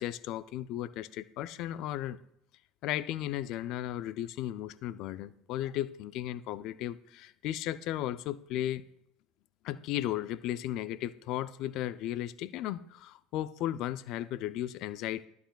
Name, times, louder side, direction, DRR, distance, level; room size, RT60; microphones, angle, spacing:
voice 1, 0.0-2.2 2.8-8.8 9.6-15.3, left 13 dB, 65° left, 0.4 m, -35 dB
11.5 x 9.4 x 2.3 m
hypercardioid pair, 85°, 0 cm